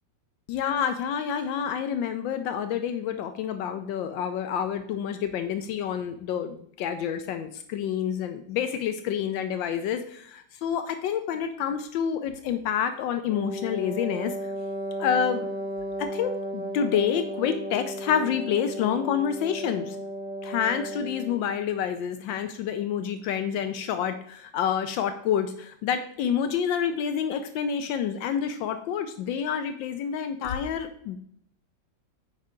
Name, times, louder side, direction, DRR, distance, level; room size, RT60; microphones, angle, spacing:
voice 1, 0.5-14.3 15.0-15.5 16.0-20.0 20.4-31.2, left 8 dB, 80° left, 9 dB, 1.3 m, -28 dB
Wind instrument woodwind instrument, 13.3-21.4, equal, ahead, 3.2 m, -34 dB
9.8 x 4.7 x 3.7 m, 0.66 s
omnidirectional pair, 2.0 m